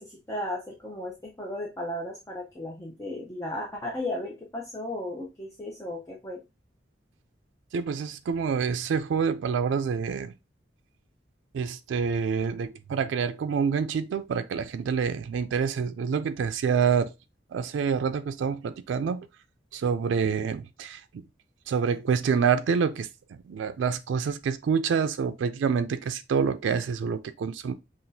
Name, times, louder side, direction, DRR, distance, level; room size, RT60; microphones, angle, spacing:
voice 1, 0.0-6.4, left 1 dB, 15° left, 0.6 m, -35 dB
voice 2, 7.7-10.3 11.5-17.1 17.5-19.3 19.7-21.2 21.7-23.1 23.5-27.7, right 6 dB, 90° right, 0.3 m, -27 dB
5.7 x 2.5 x 2.6 m
head